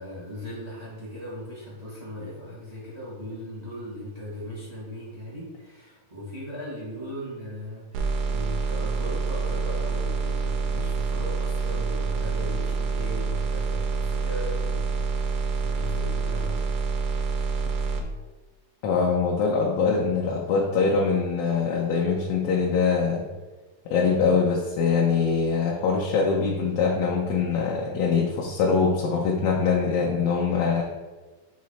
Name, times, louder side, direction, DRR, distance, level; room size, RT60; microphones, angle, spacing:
voice 1, 0.0-15.4 15.6-16.6, left 1 dB, 30° right, -7 dB, 0.6 m, -38 dB
sound 1, 7.9-18.0, right 4 dB, 80° right, 2.0 m, -27 dB
voice 2, 18.8-23.2 23.9-30.8, left 5 dB, 70° left, -2 dB, 1.7 m, -23 dB
7.6 x 3.1 x 4.2 m, 1.2 s
omnidirectional pair, 3.6 m